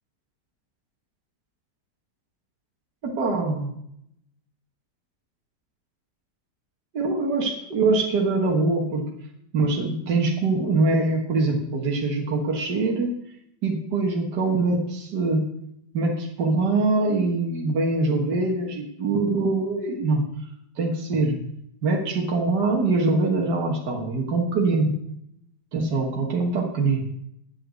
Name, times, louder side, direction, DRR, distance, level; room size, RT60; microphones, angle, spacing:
voice 1, 3.0-3.7 6.9-9.1 9.5-13.2 13.6-15.4 15.9-20.2 20.8-21.4 21.8-24.9 25.7-27.1, right 3 dB, 65° right, -1 dB, 2.0 m, -23 dB
9.9 x 7.9 x 6.3 m, 0.74 s
omnidirectional pair, 1.9 m